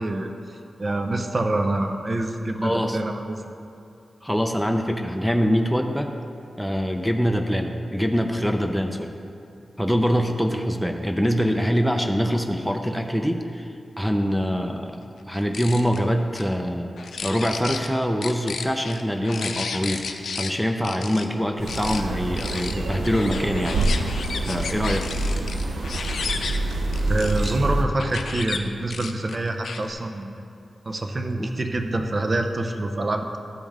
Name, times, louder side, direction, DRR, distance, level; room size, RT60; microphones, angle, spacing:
voice 1, 0.0-3.4 27.1-30.3 30.9-33.4, right 2 dB, 40° right, 5 dB, 0.6 m, -26 dB
voice 2, 2.6-3.0 4.2-6.1 6.6-9.1 9.8-16.9 17.2-20.0 20.4-24.1 24.5-25.1 31.4-31.5, equal, ahead, 4 dB, 0.5 m, -24 dB
sound 1, 15.3-16.0 16.3-16.4 17.0-17.9 18.2-20.5 20.8-21.2 21.7-22.0 22.4-27.5 28.0-28.6 28.9-29.9, left 5 dB, 80° left, 0.5 m, -33 dB
sound 2, 21.6-27.8, right 2 dB, 90° right, 0.6 m, -26 dB
13.0 x 5.3 x 3.6 m, 2.5 s
cardioid pair, 75°, 0 cm